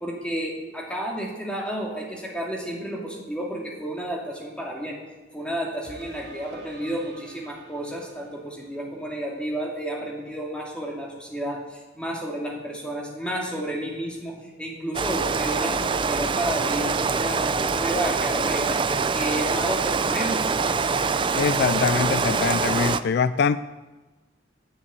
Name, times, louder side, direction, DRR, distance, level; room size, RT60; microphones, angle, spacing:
voice 1, 0.0-5.0 5.3-18.8 19.1-20.5, right 1 dB, 5° left, -2 dB, 2.4 m, -31 dB
sound 1, 5.8-8.8 9.3-9.4, right 1 dB, 60° right, 2.1 m, -47 dB
Rain, 14.9-23.0, right 4 dB, 25° right, 0.4 m, -24 dB
voice 2, 21.4-23.6, left 6 dB, 55° left, 15 dB, 0.3 m, -23 dB
10.0 x 9.7 x 8.2 m, 1.2 s
head